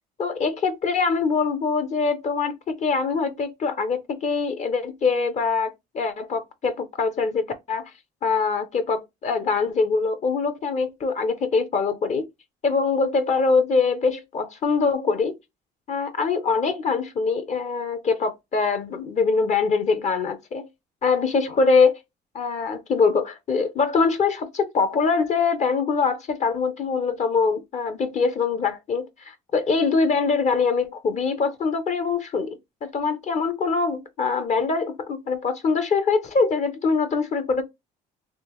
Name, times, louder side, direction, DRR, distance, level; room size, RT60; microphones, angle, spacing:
voice 1, 0.2-7.8 8.2-12.2 12.6-15.3 15.9-20.7 21.0-22.0 22.3-37.6, left 4 dB, 45° left, 0.6 m, -23 dB
3.4 x 2.9 x 2.9 m
cardioid pair, 110°, 17 cm